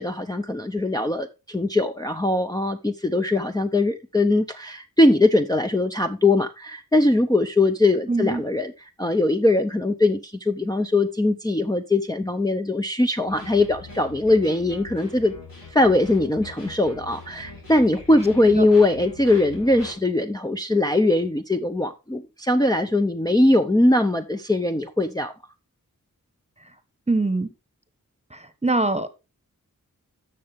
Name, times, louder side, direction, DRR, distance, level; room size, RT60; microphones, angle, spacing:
voice 1, 0.0-15.3 15.7-25.3, left 2 dB, 10° left, 0.6 m, -21 dB
voice 2, 8.1-8.4 18.5-18.7 27.1-27.5 28.3-29.1, right 2 dB, 20° right, 1.1 m, -23 dB
sound 1, 13.3-19.9, left 3 dB, 85° left, 4.9 m, -42 dB
11.0 x 6.6 x 3.5 m
wide cardioid pair, 55°, 34 cm